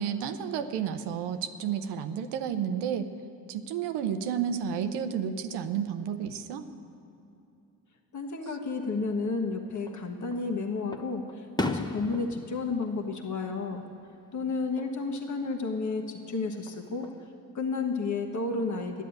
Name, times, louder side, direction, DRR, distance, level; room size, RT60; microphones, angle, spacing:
voice 1, 0.0-3.1 3.5-6.7, right 8 dB, 85° right, 8 dB, 0.7 m, -31 dB
voice 2, 8.1-13.8 14.3-17.1 17.5-19.0, left 4 dB, 45° left, 2 dB, 1.3 m, -31 dB
Fireworks, 9.7-10.4 10.9-14.0 14.4-14.9 16.5-17.3, left 2 dB, 10° left, 0.8 m, -37 dB
11.5 x 8.2 x 8.5 m, 2.7 s
supercardioid pair, 45°, 40 cm